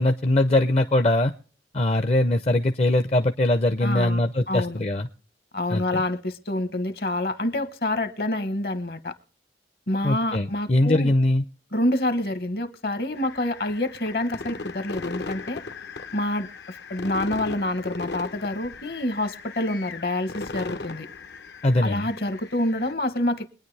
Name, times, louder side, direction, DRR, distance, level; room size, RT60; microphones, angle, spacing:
voice 1, 0.0-1.3 1.7-5.1 5.7-6.0 10.0-11.4 21.6-22.1, left 1 dB, 35° left, 0.5 m, -21 dB
voice 2, 3.8-4.8 5.5-9.1 9.9-11.1 11.7-15.6 16.1-21.1 21.8-23.5, left 1 dB, 60° left, 1.1 m, -27 dB
sound 1, 13.2-22.9, left 3 dB, 80° left, 1.0 m, -38 dB
23.0 x 9.6 x 3.3 m
head